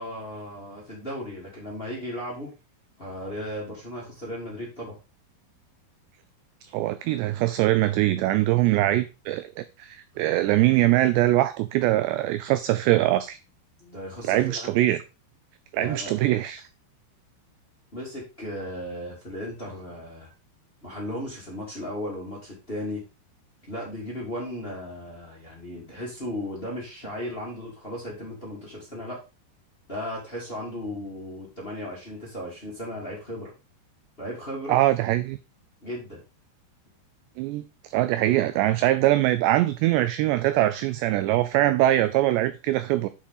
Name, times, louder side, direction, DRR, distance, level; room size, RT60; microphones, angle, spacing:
voice 1, 0.0-2.5 3.0-4.9 13.8-14.7 15.8-16.1 17.9-20.3 20.8-23.0 23.7-29.2 29.9-33.5 34.2-34.8 35.8-36.2, equal, 15° left, 2.3 m, -36 dB
voice 2, 6.7-13.4 14.3-15.0 15.7-16.6 34.7-35.4 37.4-37.6 37.9-43.1, right 15 dB, 85° right, 2.5 m, -22 dB
8.7 x 5.8 x 4.0 m
omnidirectional pair, 5.5 m